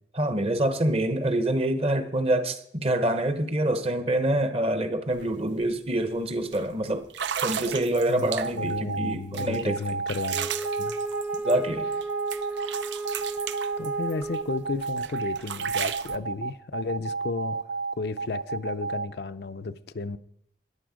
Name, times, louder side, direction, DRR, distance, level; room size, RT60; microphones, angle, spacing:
voice 1, 0.1-7.1 7.4-9.8 11.4-11.9, right 1 dB, 35° right, 0.9 m, -26 dB
sound 1, 5.1-5.2 5.6-5.9 6.5-6.6 7.1-8.8 9.3-12.0 12.3-14.4 14.8-16.2, right 8 dB, 80° right, 0.6 m, -34 dB
sound 2, 8.3-19.1, right 4 dB, 60° right, 0.9 m, -31 dB
voice 2, 8.5-10.5 10.8-10.9 13.8-17.7 17.9-20.2, left 3 dB, 65° left, 0.5 m, -33 dB
Wind instrument woodwind instrument, 10.3-14.9, right 2 dB, 10° right, 0.4 m, -34 dB
14.0 x 10.5 x 5.1 m
head